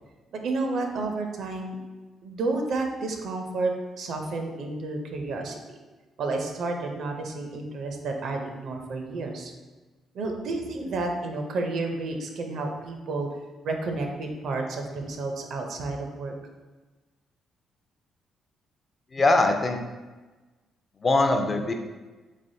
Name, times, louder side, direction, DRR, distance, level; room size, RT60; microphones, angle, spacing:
voice 1, 0.3-1.8 2.2-5.8 6.2-9.5 10.1-13.3 13.6-16.3, right 3 dB, 70° right, 3 dB, 0.5 m, -31 dB
voice 2, 19.1-19.8 21.0-21.7, left 2 dB, 30° left, 5 dB, 0.4 m, -21 dB
3.7 x 3.3 x 2.6 m, 1.2 s
cardioid pair, 90°, 0 cm